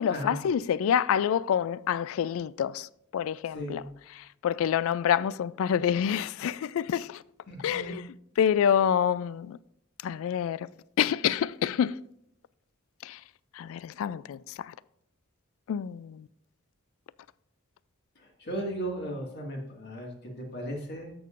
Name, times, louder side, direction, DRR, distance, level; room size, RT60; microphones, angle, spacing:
voice 1, 0.0-3.8 4.4-7.2 7.6-8.0 8.4-9.6 10.0-10.7 11.0-12.0 13.0-13.2 13.5-14.7 15.7-16.3, left 8 dB, 70° left, 0.3 m, -27 dB
voice 2, 7.5-7.9 18.2-21.1, right 1 dB, 55° left, 1.9 m, -36 dB
13.0 x 6.8 x 2.5 m
head